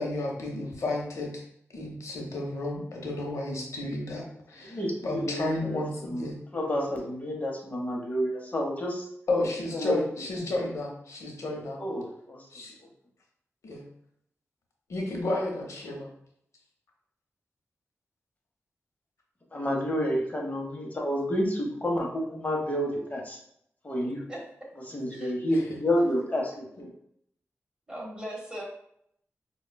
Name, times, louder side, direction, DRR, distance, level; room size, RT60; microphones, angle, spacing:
voice 1, 0.0-1.3 1.7-6.4 9.3-11.8 12.5-12.8 13.6-13.8 14.9-16.1, left 2 dB, 85° left, 0 dB, 0.7 m, -32 dB
voice 2, 4.6-6.2 6.5-9.1 9.7-10.1 11.8-12.5 19.5-23.4 23.8-24.2 24.9-26.9, equal, 30° left, 0 dB, 0.9 m, -29 dB
voice 3, 24.0-24.4 25.1-25.3 27.9-28.6, right 1 dB, 20° right, -3 dB, 1.2 m, -39 dB
5.0 x 2.2 x 2.2 m, 0.71 s
cardioid pair, 70°, 5 cm